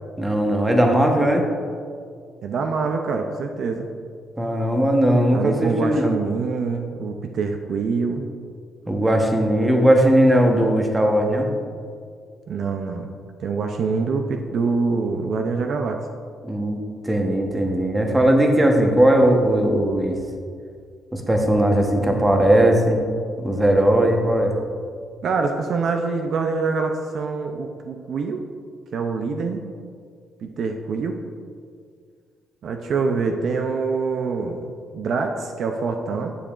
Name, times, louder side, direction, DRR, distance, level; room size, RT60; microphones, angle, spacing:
voice 1, 0.2-1.4 4.4-6.2 8.9-11.5 16.4-16.8 17.0-20.2 21.1-23.0 23.4-24.6, right 1 dB, 15° right, 2 dB, 1.0 m, -18 dB
voice 2, 2.4-3.9 5.3-8.3 12.5-13.1 13.4-16.0 25.2-28.4 28.9-29.6 30.4-31.2 32.6-34.6 34.9-36.3, right 4 dB, 65° right, 4 dB, 0.5 m, -25 dB
10.0 x 7.0 x 2.5 m, 2.2 s
cardioid pair, 90°, 0 cm